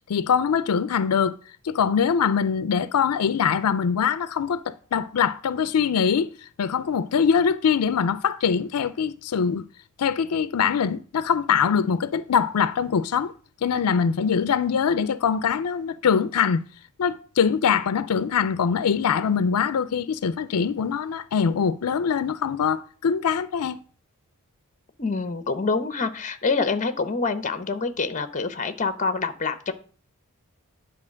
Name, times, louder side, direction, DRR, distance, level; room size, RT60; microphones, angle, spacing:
voice 1, 0.1-1.4 1.6-6.3 6.6-9.6 10.0-13.3 13.6-16.6 17.0-23.8, left 7 dB, 85° left, 0.4 m, -23 dB
voice 2, 25.0-29.7, left 4 dB, 35° left, 0.8 m, -26 dB
9.9 x 4.0 x 6.3 m
head